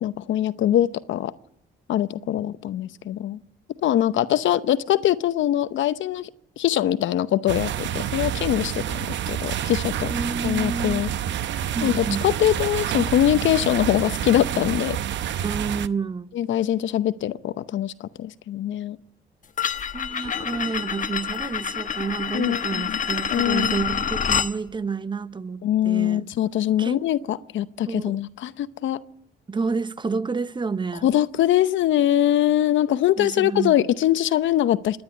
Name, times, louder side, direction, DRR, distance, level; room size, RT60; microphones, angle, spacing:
voice 1, 0.0-1.3 1.9-3.4 3.8-6.3 6.6-10.1 10.4-11.1 11.8-15.0 16.3-19.0 22.3-23.0 23.3-23.8 25.6-29.0 31.0-35.0, left 12 dB, 75° left, 0.8 m, -23 dB
sound 1, 7.5-15.9, right 10 dB, 70° right, 0.8 m, -28 dB
voice 2, 10.1-11.0 11.7-12.3 15.4-16.3 19.9-26.2 26.8-27.0 27.9-28.2 29.5-31.1 33.2-33.8, right 5 dB, 25° right, 0.8 m, -29 dB
sound 2, 19.6-24.5, left 7 dB, 40° left, 1.1 m, -27 dB
27.0 x 10.5 x 9.4 m
cardioid pair, 90°, 20 cm